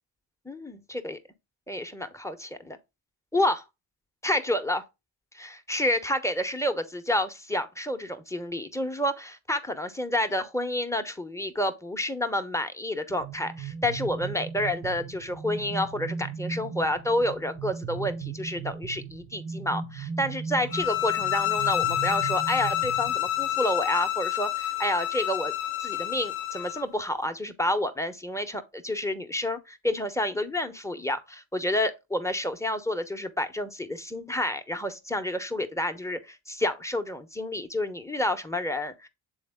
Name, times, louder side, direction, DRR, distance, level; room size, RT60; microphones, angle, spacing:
voice 1, 0.5-1.2 1.7-2.8 3.3-3.6 4.2-4.8 5.3-25.5 25.8-39.1, left 1 dB, 5° left, 1.0 m, -29 dB
sound 1, 13.1-23.6, right 5 dB, 85° right, 1.8 m, -37 dB
sound 2, 20.7-26.8, left 13 dB, 85° left, 0.8 m, -28 dB
7.9 x 3.5 x 3.6 m
supercardioid pair, 55°, 47 cm